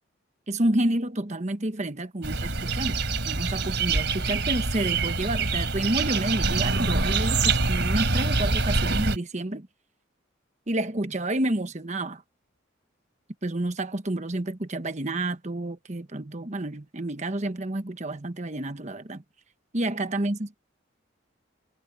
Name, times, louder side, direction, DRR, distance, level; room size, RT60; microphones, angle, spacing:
voice 1, 0.5-9.7 10.7-12.2 13.4-19.2 19.7-20.6, right 1 dB, 35° right, 1.2 m, -29 dB
sound 1, 2.2-9.2, right 3 dB, 60° right, 4.2 m, -25 dB
head